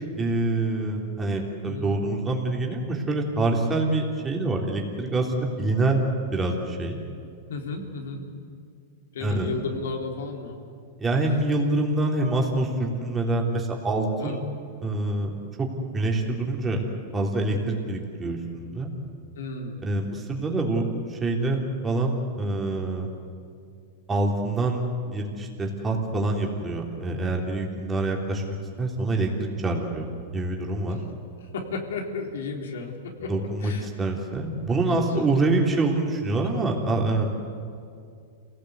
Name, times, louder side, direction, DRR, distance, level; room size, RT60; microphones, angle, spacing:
voice 1, 0.2-7.0 9.2-9.5 11.0-14.4 14.8-15.3 15.6-15.7 15.9-16.8 17.1-18.9 19.8-23.1 24.1-24.8 25.1-28.4 28.8-31.0 33.3-37.3, right 2 dB, 15° right, 0 dB, 3.3 m, -26 dB
voice 2, 7.5-8.2 9.1-10.6 14.2-14.4 19.4-20.0 30.9-31.0 31.5-33.3 33.6-33.9 34.9-35.2, left 4 dB, 85° left, 2 dB, 3.7 m, -33 dB
27.5 x 17.5 x 8.2 m, 2.4 s
supercardioid pair, 145°, 0 cm